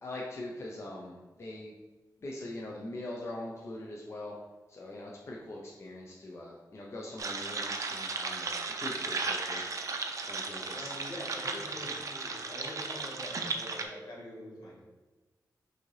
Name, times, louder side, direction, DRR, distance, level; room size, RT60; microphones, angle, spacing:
voice 1, 0.0-1.7 2.2-4.4 4.7-9.6 10.3-10.9 11.6-11.8, left 1 dB, 40° left, -2 dB, 0.5 m, -42 dB
sound 1, 7.2-13.8, right 3 dB, 50° right, 0.4 m, -35 dB
voice 2, 10.7-14.8, left 1 dB, 75° left, -4 dB, 1.4 m, -44 dB
6.2 x 2.7 x 3.2 m, 1.2 s
wide cardioid pair, 150°, 7 cm